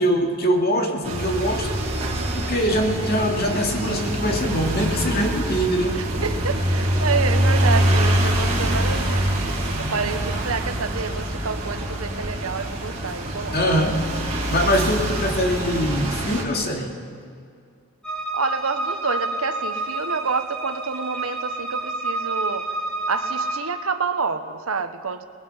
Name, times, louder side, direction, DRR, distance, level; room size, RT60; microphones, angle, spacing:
voice 1, 0.0-1.8 2.3-6.0 13.5-14.1 14.5-17.0, equal, 45° left, 2 dB, 2.5 m, -23 dB
sound 1, 1.0-16.4, right 1 dB, 30° right, 5.3 m, -24 dB
voice 2, 5.9-13.6 18.3-22.7 23.1-25.2, right 5 dB, 80° right, 9 dB, 1.2 m, -28 dB
sound 2, 18.0-23.6, right 2 dB, 5° left, 3.7 m, -29 dB
28.5 x 20.5 x 5.7 m, 2.3 s
head